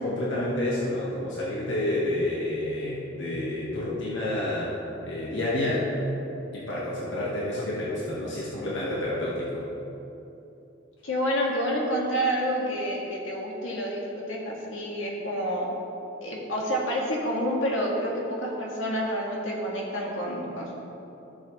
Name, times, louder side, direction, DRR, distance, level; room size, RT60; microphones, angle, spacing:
voice 1, 0.0-4.7 5.0-5.9 6.5-9.7, left 1 dB, 70° left, -6 dB, 1.4 m, -29 dB
voice 2, 11.0-15.7 16.2-20.7, equal, 85° left, -3 dB, 1.8 m, -28 dB
14.5 x 6.8 x 3.1 m, 3.0 s
head